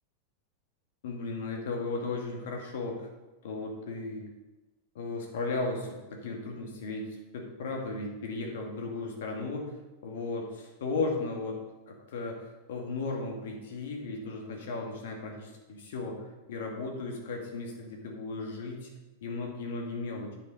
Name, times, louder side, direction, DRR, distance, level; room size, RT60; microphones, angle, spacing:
voice 1, 1.0-3.1 3.4-4.2 4.9-9.8 10.0-11.6 11.9-12.4 12.7-18.9 19.2-20.3, left 3 dB, 55° left, 1 dB, 2.2 m, -35 dB
9.6 x 7.1 x 5.3 m, 1.1 s
figure-of-eight pair, 90°, 0 cm